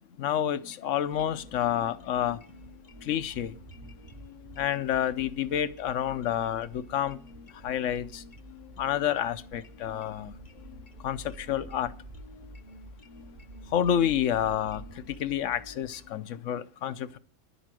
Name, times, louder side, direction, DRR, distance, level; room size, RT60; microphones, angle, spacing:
voice 1, 0.2-2.4 3.0-3.6 4.6-7.2 7.5-8.2 8.8-10.3 11.0-11.9 13.7-17.2, left 10 dB, 75° left, 1.1 m, -29 dB
sound 1, 0.5-16.2, left 4 dB, 40° left, 1.0 m, -53 dB
sound 2, 1.1-16.1, right 1 dB, 40° right, 0.9 m, -50 dB
11.0 x 8.3 x 7.6 m
omnidirectional pair, 1.3 m